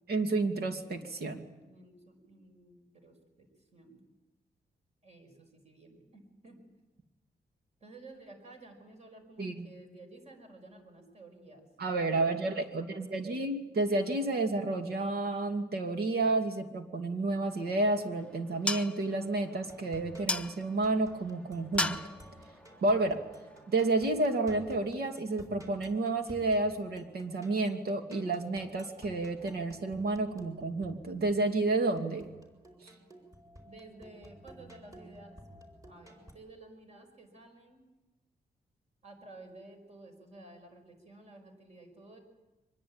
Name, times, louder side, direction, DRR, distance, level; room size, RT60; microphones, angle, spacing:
voice 1, 0.1-1.4 9.4-9.7 11.8-22.0 22.8-23.2 23.7-32.3 32.8-32.9, right 2 dB, 70° right, 5 dB, 2.6 m, -30 dB
voice 2, 1.5-4.0 5.0-6.6 7.8-11.7 12.5-13.5 33.6-35.4 35.8-37.8 39.0-42.2, right 2 dB, 40° right, 4 dB, 5.6 m, -53 dB
sound 1, 17.5-23.9, left 2 dB, 5° left, 0.8 m, -39 dB
sound 2, 19.6-36.3, right 1 dB, 20° right, 4.4 m, -54 dB
24.5 x 21.0 x 8.9 m, 1.1 s
wide cardioid pair, 175°, 17 cm